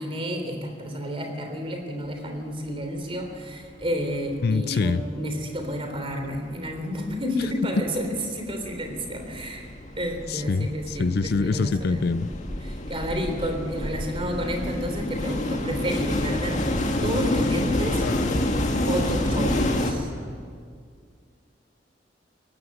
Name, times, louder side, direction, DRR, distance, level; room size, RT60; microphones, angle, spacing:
voice 1, 0.0-9.7 9.9-12.0 12.6-16.6 17.0-18.1 18.9-20.1, equal, 30° right, 4 dB, 3.3 m, -30 dB
sound 1, 3.3-3.4 3.6-4.6 4.9-19.9, left 1 dB, 40° left, 2.0 m, -28 dB
voice 2, 4.4-5.0 10.3-12.3 18.0-18.5, left 4 dB, 60° left, 15 dB, 0.4 m, -25 dB
18.0 x 15.5 x 9.8 m, 2.1 s
head